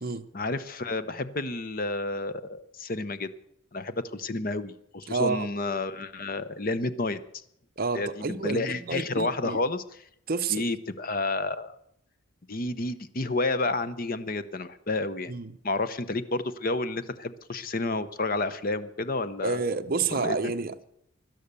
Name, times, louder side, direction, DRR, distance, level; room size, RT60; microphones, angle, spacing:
voice 1, 0.3-3.3 3.7-7.2 7.9-9.8 10.5-11.8 12.5-15.3 15.6-19.7 20.1-20.4, left 2 dB, 45° left, 0.8 m, -30 dB
voice 2, 5.1-5.5 7.8-9.6 10.3-10.6 15.3-15.5 19.4-20.9, right 4 dB, 45° right, 0.8 m, -29 dB
17.0 x 12.0 x 6.8 m
head